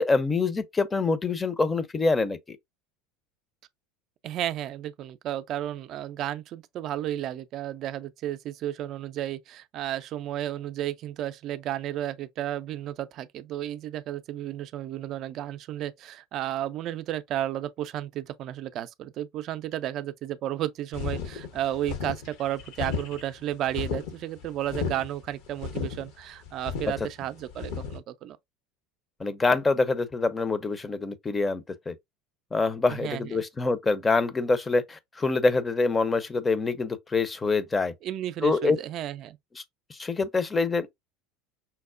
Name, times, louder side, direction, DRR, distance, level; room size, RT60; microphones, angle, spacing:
voice 1, 0.0-2.6 29.2-32.0 32.5-37.9 38.4-38.8 39.6-39.7 39.9-40.9, left 3 dB, 20° left, 0.5 m, -25 dB
voice 2, 4.2-28.4 32.9-33.4 38.0-39.4, right 12 dB, 50° right, 0.4 m, -33 dB
sound 1, 20.9-28.0, left 6 dB, 65° left, 0.7 m, -34 dB
5.6 x 2.0 x 2.4 m
hypercardioid pair, 75°, 0 cm